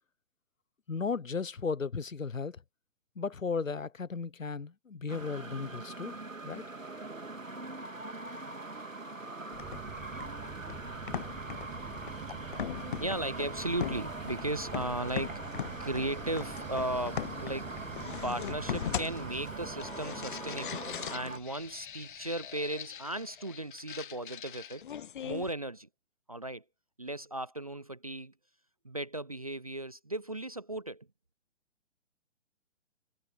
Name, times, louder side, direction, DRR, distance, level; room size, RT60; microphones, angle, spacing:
voice 1, 0.9-2.6 3.2-6.2 6.4-6.7, left 5 dB, 80° left, 1.1 m, -35 dB
sound 1, 5.1-21.4, right 2 dB, 85° right, 2.0 m, -42 dB
sound 2, 9.5-25.5, left 9 dB, 40° left, 1.0 m, -41 dB
sound 3, 9.6-22.8, right 19 dB, 15° right, 1.4 m, -48 dB
voice 2, 13.0-17.8 18.2-24.8 25.2-25.9 26.3-26.6 27.0-28.3 28.8-31.1, right 1 dB, 30° right, 0.4 m, -36 dB
figure-of-eight pair, 135°, 39 cm